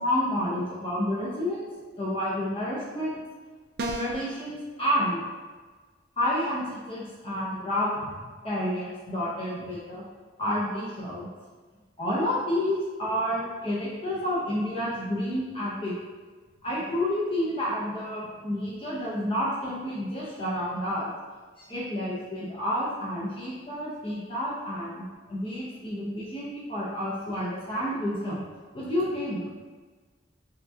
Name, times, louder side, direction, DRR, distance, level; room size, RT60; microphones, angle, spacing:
voice 1, 0.0-1.7 2.0-3.2 3.9-5.2 6.2-8.1 8.4-10.0 10.4-11.3 12.0-15.9 16.6-21.1 21.6-28.4 28.7-29.4, left 1 dB, 30° left, -7 dB, 0.7 m, -30 dB
sound 1, 3.8-4.3, right 1 dB, 50° right, 0.3 m, -31 dB
5.6 x 2.4 x 2.7 m, 1.4 s
head